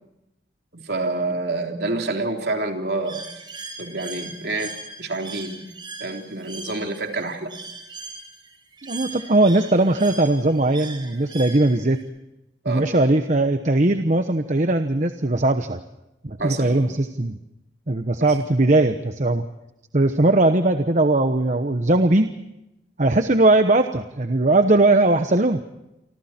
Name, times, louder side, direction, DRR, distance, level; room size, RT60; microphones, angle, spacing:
voice 1, 0.7-3.2 3.8-4.7 5.0-5.6 6.0-7.6 12.6-12.9 16.4-16.9, right 2 dB, 60° right, 3 dB, 3.5 m, -27 dB
Bird, 3.1-12.0, right 3 dB, 25° right, 6.2 m, -39 dB
voice 2, 8.8-12.0 12.7-15.8 16.2-17.4 17.9-19.4 19.9-22.3 23.0-25.6, right 2 dB, 40° right, 7 dB, 1.0 m, -19 dB
28.5 x 25.5 x 4.4 m, 0.90 s
head